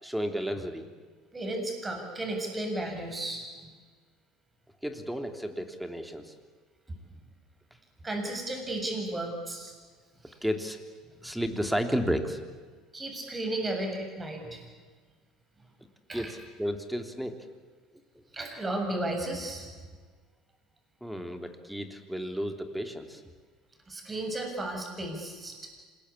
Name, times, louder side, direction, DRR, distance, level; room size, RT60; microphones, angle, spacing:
voice 1, 0.0-0.8 4.8-6.3 10.4-10.8 11.2-12.4 16.1-17.4 21.0-23.2, equal, 5° right, 6 dB, 3.2 m, -32 dB
voice 2, 1.3-3.5 8.0-9.7 10.3-10.4 12.9-14.6 16.1-16.3 18.3-19.7 23.9-25.5, right 1 dB, 20° right, 3 dB, 7.6 m, -34 dB
27.0 x 21.0 x 8.5 m, 1.5 s
hypercardioid pair, 70°, 0 cm